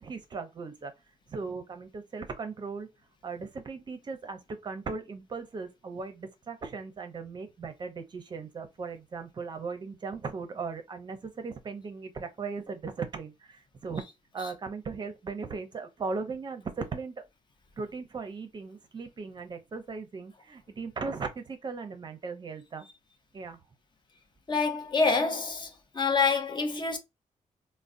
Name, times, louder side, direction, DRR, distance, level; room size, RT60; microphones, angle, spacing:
voice 1, 0.0-0.9 1.3-2.9 3.2-14.0 14.3-17.1 17.8-22.9 23.3-23.6, right 4 dB, 35° right, 0.5 m, -38 dB
voice 2, 24.5-25.7 25.9-27.0, left 4 dB, 35° left, 0.6 m, -26 dB
3.7 x 2.1 x 2.5 m
wide cardioid pair, 150°, 13 cm